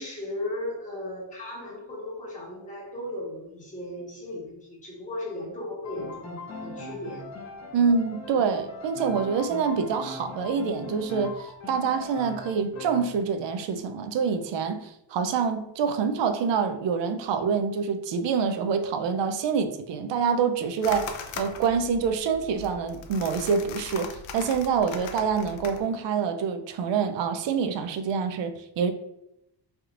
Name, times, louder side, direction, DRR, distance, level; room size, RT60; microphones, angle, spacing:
voice 1, 0.0-7.3, left 1 dB, 15° left, -5 dB, 1.2 m, -36 dB
Piano, 5.8-13.2, left 2 dB, 35° left, 0.7 m, -40 dB
voice 2, 7.7-28.9, right 6 dB, 75° right, 8 dB, 0.5 m, -26 dB
sound 1, 20.8-25.8, left 5 dB, 90° left, 0.6 m, -40 dB
3.3 x 2.8 x 2.4 m, 0.82 s
cardioid pair, 90°, 45 cm